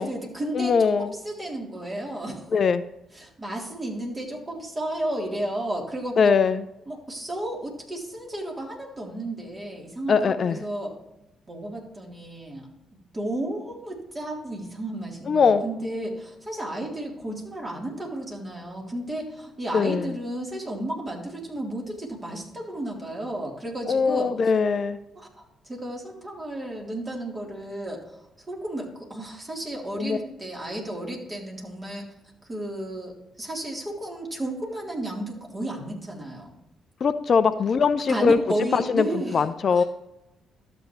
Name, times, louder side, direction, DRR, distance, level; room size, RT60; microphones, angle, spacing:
voice 1, 0.0-2.5 3.1-6.3 6.9-10.9 11.5-12.7 13.1-24.3 25.2-32.1 32.5-36.5 38.1-39.9, right 1 dB, 30° right, -1 dB, 3.5 m, -33 dB
voice 2, 0.5-1.1 2.5-2.8 6.2-6.6 10.1-10.6 15.3-15.6 19.7-20.1 23.9-25.0 30.0-30.2 37.0-38.4 38.7-39.8, left 5 dB, 50° left, 12 dB, 0.5 m, -21 dB
12.5 x 7.8 x 3.1 m, 0.91 s
hypercardioid pair, 45°, 0 cm